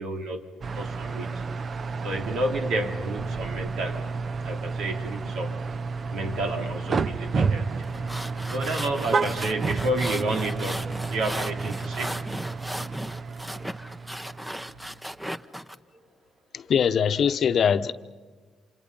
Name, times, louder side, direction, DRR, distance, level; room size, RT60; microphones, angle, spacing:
voice 1, 0.0-1.6 2.0-4.1 4.4-5.8 6.1-7.9 8.5-12.2, right 1 dB, 80° right, 2.9 m, -31 dB
sound 1, 0.6-14.9, right 4 dB, 45° right, 0.7 m, -31 dB
Icy car, 7.8-15.8, equal, 5° right, 0.8 m, -36 dB
voice 2, 16.5-17.9, left 7 dB, 60° left, 0.9 m, -22 dB
28.0 x 27.0 x 5.5 m
cardioid pair, 90°, 0 cm